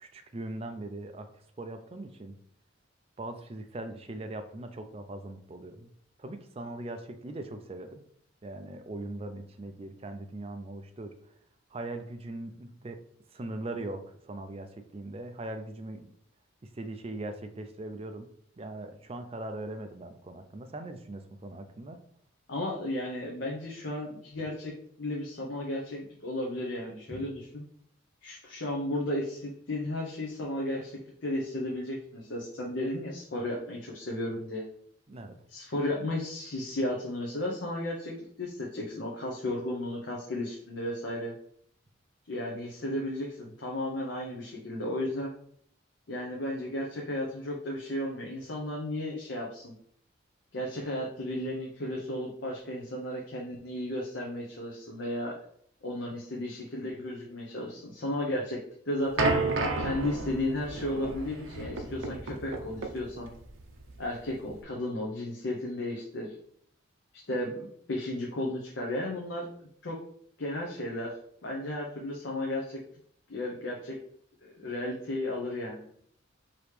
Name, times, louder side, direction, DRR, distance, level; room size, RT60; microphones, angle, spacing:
voice 1, 0.0-2.3 3.2-5.9 6.2-8.0 8.4-11.1 11.7-13.0 13.3-16.1 16.7-18.3 18.6-22.0 27.1-27.3 35.1-35.4, right 2 dB, 30° right, 7 dB, 0.4 m, -40 dB
voice 2, 22.5-24.7 25.0-27.6 28.2-34.6 35.5-41.3 42.3-45.3 46.1-49.7 50.5-55.4 55.8-58.6 58.9-59.3 59.8-63.3 64.0-66.3 67.1-69.5 69.8-70.0 70.4-71.2 71.4-72.8 73.3-74.0 74.5-75.8, left 1 dB, 60° left, -2 dB, 0.7 m, -34 dB
sound 1, 59.2-64.6, right 3 dB, 70° right, 0.6 m, -32 dB
4.9 x 3.0 x 3.2 m, 0.64 s
head